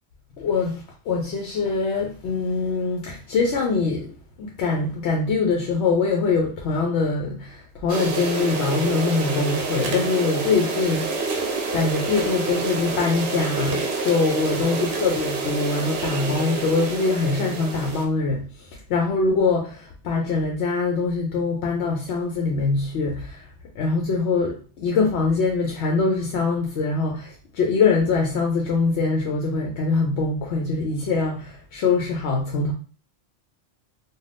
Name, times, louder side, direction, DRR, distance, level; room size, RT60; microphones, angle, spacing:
voice 1, 0.4-4.1 4.4-11.3 11.7-32.7, left 4 dB, 85° left, 0 dB, 0.8 m, -23 dB
sound 1, 7.9-18.0, right 3 dB, 70° right, 0.8 m, -28 dB
2.5 x 2.3 x 3.3 m, 0.39 s
omnidirectional pair, 1.1 m